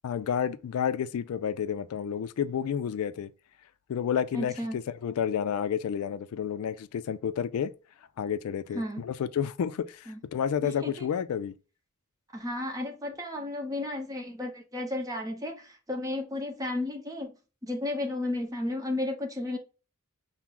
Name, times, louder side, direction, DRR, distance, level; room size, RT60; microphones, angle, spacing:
voice 1, 0.0-3.3 3.9-7.7 8.2-11.5, left 8 dB, 75° left, 0.3 m, -30 dB
voice 2, 4.3-4.8 8.7-9.0 10.1-10.2 10.6-11.1 12.3-17.3 17.6-19.6, left 2 dB, 15° right, 0.8 m, -33 dB
5.9 x 2.0 x 3.6 m
head